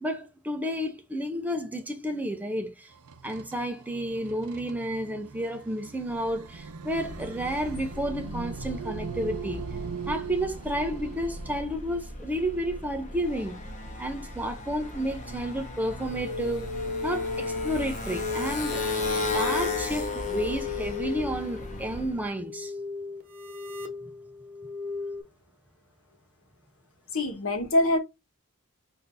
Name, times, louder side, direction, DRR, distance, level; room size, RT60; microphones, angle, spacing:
voice 1, 0.0-2.7 3.2-9.6 10.1-13.6 14.0-16.7 17.0-18.8 19.3-22.7, equal, 5° right, 0.5 m, -31 dB
sound 1, 2.9-11.6, right 6 dB, 75° right, 0.6 m, -40 dB
Motorcycle, 6.8-22.2, left 2 dB, 35° left, 1.0 m, -37 dB
sound 2, 16.0-25.2, left 5 dB, 40° right, 1.1 m, -34 dB
voice 2, 27.1-28.0, left 1 dB, 65° left, 1.1 m, -24 dB
6.4 x 2.6 x 2.5 m
head